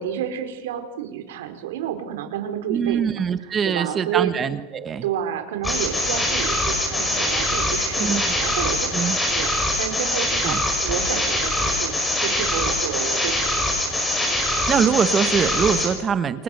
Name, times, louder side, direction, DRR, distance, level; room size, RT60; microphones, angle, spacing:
voice 1, 0.0-4.3 5.0-11.9 12.2-13.5 14.2-14.3, right 10 dB, 85° right, 6 dB, 4.5 m, -30 dB
voice 2, 2.7-5.0 8.0-8.2 8.9-9.2 10.4-10.6 14.7-16.4, right 7 dB, 20° right, 11 dB, 1.2 m, -23 dB
sound 1, 5.6-15.9, left 1 dB, 10° left, 5.3 m, -23 dB
29.0 x 25.0 x 6.7 m, 1.0 s
supercardioid pair, 170°, 0 cm